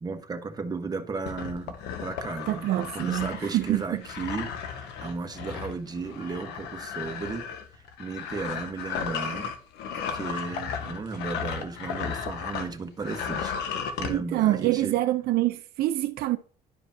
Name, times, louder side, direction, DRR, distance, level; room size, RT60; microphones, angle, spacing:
voice 1, 0.0-7.5 7.7-9.5 9.9-15.0, right 4 dB, 25° right, 1.1 m, -35 dB
sound 1, 1.2-12.7 13.0-14.1, left 7 dB, 90° left, 1.2 m, -35 dB
voice 2, 2.5-3.8 14.1-16.4, right 15 dB, 70° right, 0.6 m, -26 dB
11.5 x 5.0 x 2.7 m
cardioid pair, 110°, 17 cm